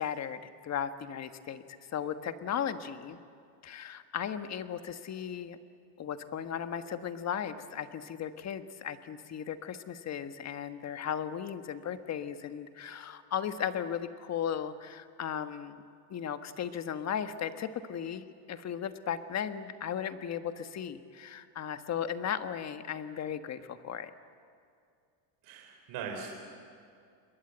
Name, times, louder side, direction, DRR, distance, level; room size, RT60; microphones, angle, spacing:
voice 1, 0.0-1.6 1.9-3.2 3.6-5.6 6.0-15.8 16.1-24.1, left 8 dB, 35° left, 9 dB, 1.4 m, -36 dB
voice 2, 25.4-26.3, right 6 dB, 55° right, 1 dB, 3.7 m, -40 dB
28.5 x 21.5 x 8.1 m, 2.4 s
supercardioid pair, 125°, 45 cm